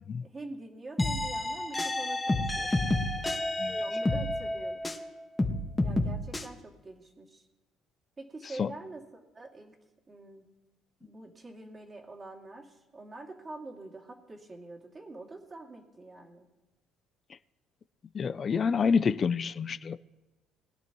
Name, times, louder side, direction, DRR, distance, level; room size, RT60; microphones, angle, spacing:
voice 1, 0.2-2.7 3.2-3.3 3.8-4.8 5.8-7.4 8.2-9.0 9.3-9.7 10.1-10.4 11.0-12.7 12.9-16.4, right 2 dB, 25° right, 2.5 m, -45 dB
sound 1, 1.0-5.1 5.4-6.4, left 1 dB, 10° left, 1.6 m, -29 dB
voice 2, 18.1-20.0, left 6 dB, 40° left, 0.5 m, -28 dB
22.0 x 11.0 x 3.1 m
cardioid pair, 95°, 0 cm